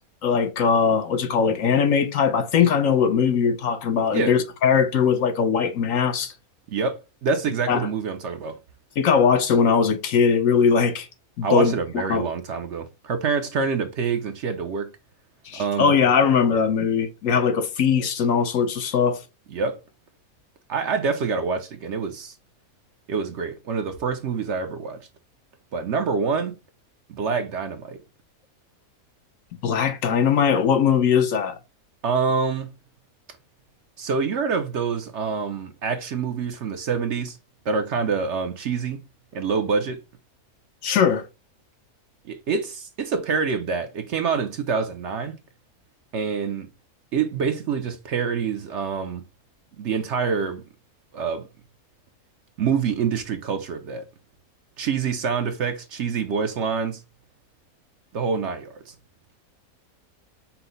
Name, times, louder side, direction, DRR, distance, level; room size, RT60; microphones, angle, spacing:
voice 1, 0.2-6.3 7.7-7.9 9.0-11.1 11.4-11.7 12.1-12.3 15.5-19.2 29.6-31.6 40.8-41.2, left 6 dB, 70° left, 1.0 m, -20 dB
voice 2, 6.7-8.6 11.4-14.9 15.5-16.0 19.5-19.8 20.7-22.3 23.1-25.1 25.7-26.6 27.1-28.0 32.0-32.7 34.0-37.4 37.7-39.0 39.3-40.0 42.3-45.3 46.1-46.7 47.1-49.2 49.8-50.6 51.1-51.5 52.6-54.1 54.8-57.0 58.1-58.9, right 5 dB, 65° right, 0.8 m, -26 dB
5.7 x 2.0 x 3.9 m
omnidirectional pair, 1.5 m